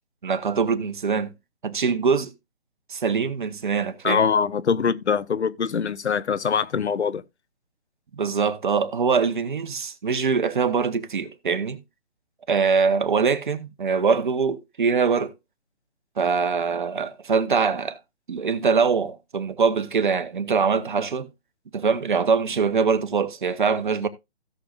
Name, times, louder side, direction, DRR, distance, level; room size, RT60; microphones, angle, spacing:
voice 1, 0.2-1.3 1.6-2.3 2.9-4.2 8.1-11.8 12.5-15.3 16.2-18.0 18.3-21.3 21.7-24.1, right 5 dB, 45° right, 1.1 m, -23 dB
voice 2, 4.0-7.2, left 6 dB, 75° left, 0.8 m, -23 dB
16.5 x 6.5 x 2.5 m
figure-of-eight pair, 160°, 34 cm